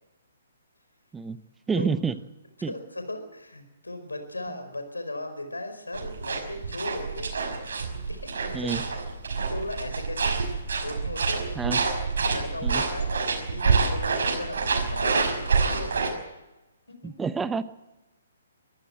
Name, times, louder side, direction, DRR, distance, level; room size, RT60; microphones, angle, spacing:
voice 1, 1.7-2.2 2.6-2.7 8.5-8.8 11.6-11.8 12.6-12.8 17.0-17.6, right 5 dB, 10° right, 14 dB, 0.9 m, -28 dB
voice 2, 2.7-7.4 8.1-9.0 9.4-10.4 10.8-11.4 12.2-13.1 13.4-16.0 16.9-17.1, left 2 dB, 85° left, 7 dB, 4.8 m, -37 dB
sound 1, 5.9-16.1, right 4 dB, 65° right, 5.6 m, -27 dB
24.0 x 15.0 x 7.7 m, 1.0 s
figure-of-eight pair, 130°, 0 cm